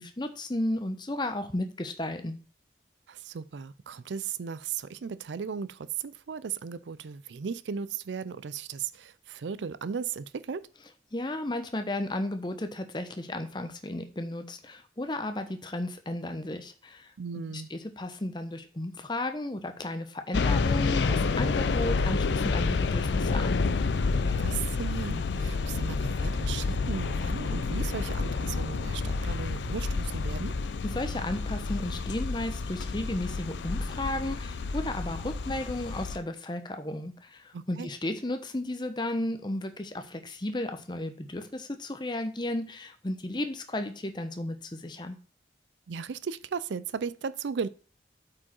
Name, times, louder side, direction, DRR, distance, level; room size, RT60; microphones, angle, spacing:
voice 1, 0.0-2.4 11.1-17.1 17.5-23.6 30.8-45.1, left 1 dB, 25° left, 0.8 m, -34 dB
voice 2, 3.1-10.7 17.2-17.7 24.4-30.6 37.5-37.9 45.9-47.7, right 6 dB, 90° right, 0.4 m, -36 dB
sound 1, 20.3-36.2, left 4 dB, 80° left, 0.5 m, -29 dB
8.5 x 4.9 x 4.4 m
head